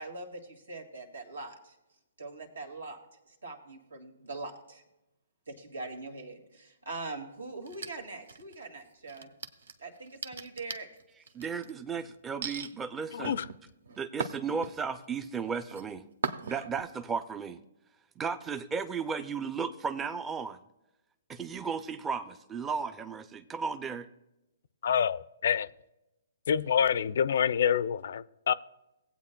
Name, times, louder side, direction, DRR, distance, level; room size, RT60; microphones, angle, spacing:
voice 1, 0.0-1.8 2.2-3.0 3.3-4.8 5.5-9.3 9.8-10.9, right 3 dB, 90° right, 2.1 m, -42 dB
sound 1, 7.7-8.6 9.1-11.7 12.4-12.7 13.2-15.0 15.4-15.8 16.2-16.8, right 5 dB, 75° right, 0.7 m, -38 dB
voice 2, 11.3-13.4 14.0-16.0 16.4-17.6 18.2-20.6 21.3-24.1, right 5 dB, 15° right, 0.4 m, -35 dB
voice 3, 13.1-13.4 24.8-25.7 26.5-28.5, left 8 dB, 65° left, 0.4 m, -27 dB
18.0 x 8.3 x 2.2 m
hypercardioid pair, 140°, 0 cm